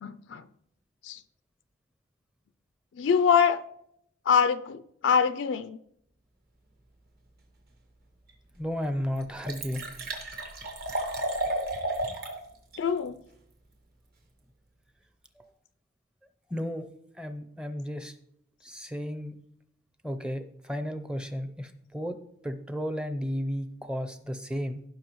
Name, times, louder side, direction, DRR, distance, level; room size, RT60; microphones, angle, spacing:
voice 1, 0.0-0.4 1.0-1.2 3.0-3.6 4.3-5.8 12.8-13.2, left 7 dB, 75° left, 0.4 m, -24 dB
Liquid, 8.3-8.4 8.8-8.9 9.1-12.4 12.7-12.8, right 1 dB, 50° right, 1.5 m, -32 dB
voice 2, 8.6-10.0 15.4-15.5 16.5-16.9 17.2-18.2 18.6-19.4 20.0-22.2 22.4-24.8, equal, 5° right, 0.6 m, -33 dB
16.0 x 5.6 x 3.0 m
head